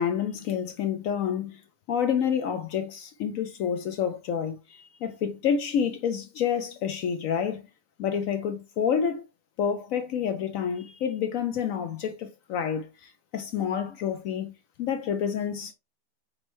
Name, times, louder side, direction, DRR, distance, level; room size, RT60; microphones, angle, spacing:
voice 1, 0.0-1.6 1.9-7.7 8.0-9.3 9.6-14.5 14.8-15.7, left 8 dB, 75° left, 0.7 m, -28 dB
5.3 x 3.2 x 3.0 m
omnidirectional pair, 1.9 m